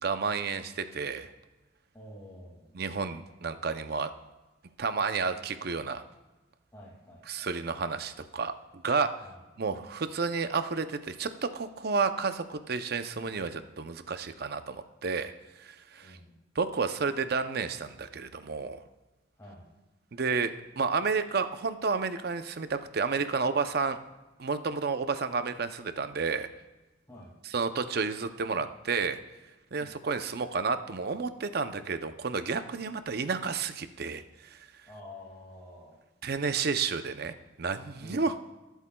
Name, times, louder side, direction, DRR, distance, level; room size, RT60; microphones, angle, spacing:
voice 1, 0.0-1.3 2.7-4.1 4.8-6.0 7.3-8.5 8.8-9.1 9.6-15.3 15.6-16.2 16.6-18.8 20.1-24.0 24.4-26.5 27.4-29.2 29.7-34.6 36.2-38.3, right 4 dB, 55° right, 10 dB, 0.6 m, -31 dB
voice 2, 1.9-3.1 6.7-7.5 9.2-9.4 15.9-16.4 19.4-19.7 27.1-27.3 29.8-30.0 34.9-36.0 38.0-38.2, left 1 dB, 15° left, -6 dB, 2.1 m, -49 dB
20.5 x 8.2 x 2.3 m, 1.1 s
head